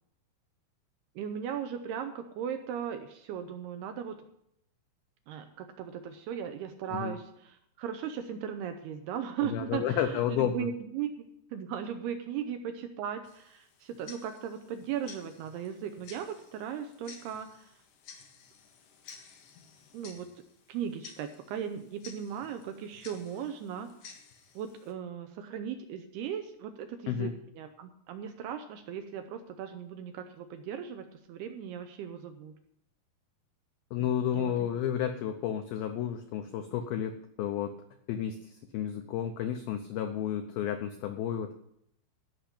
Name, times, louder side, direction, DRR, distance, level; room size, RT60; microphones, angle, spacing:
voice 1, 1.2-4.2 5.3-11.2 11.5-17.7 19.9-20.3 20.7-23.9 24.6-32.6 34.0-34.1 34.3-34.7, right 8 dB, 80° right, 7 dB, 2.5 m, -37 dB
voice 2, 9.4-10.7 27.1-27.3 33.9-37.8 38.1-41.5, left 9 dB, 85° left, 7 dB, 2.1 m, -31 dB
Tick-tock, 13.2-24.9, left 6 dB, 65° left, 2.4 m, -54 dB
14.0 x 5.8 x 8.7 m, 0.73 s
omnidirectional pair, 5.3 m